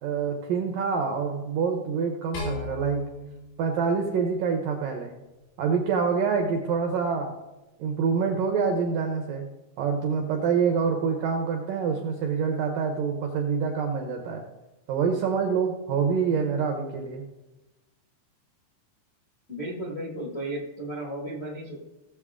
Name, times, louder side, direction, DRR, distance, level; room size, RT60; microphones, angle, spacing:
voice 1, 0.0-3.0 3.6-5.1 5.6-7.3 7.8-9.5 9.8-14.5 14.9-17.2, right 5 dB, 80° right, 3 dB, 2.0 m, -26 dB
sound 1, 2.3-4.7, left 4 dB, 90° left, 6.9 m, -38 dB
voice 2, 19.5-21.8, right 1 dB, 40° left, -4 dB, 0.8 m, -34 dB
17.5 x 7.5 x 3.7 m, 1.1 s
omnidirectional pair, 5.3 m